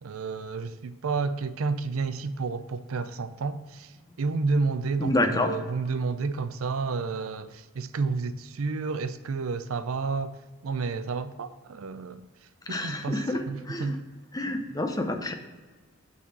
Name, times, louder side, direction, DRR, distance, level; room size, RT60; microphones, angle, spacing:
voice 1, 0.0-3.9 4.2-10.4 10.6-12.2 12.7-13.2 13.5-14.0, right 4 dB, 80° right, 12 dB, 0.5 m, -30 dB
voice 2, 5.0-5.6 12.7-14.0 14.3-15.3, left 1 dB, 15° left, 6 dB, 0.6 m, -28 dB
8.5 x 4.2 x 6.0 m, 1.3 s
head